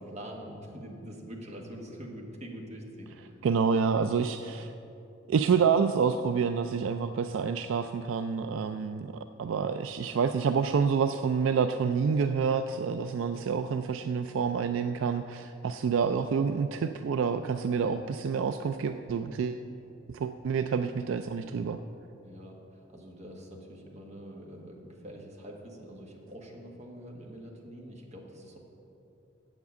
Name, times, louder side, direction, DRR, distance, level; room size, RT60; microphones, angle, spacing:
voice 1, 0.0-3.4 16.2-16.4 22.2-28.6, equal, 35° right, 0 dB, 1.4 m, -45 dB
voice 2, 3.4-4.7 5.3-9.1 9.4-19.6 20.1-21.8, right 6 dB, 65° right, 9 dB, 0.3 m, -28 dB
7.9 x 7.3 x 8.1 m, 2.8 s
head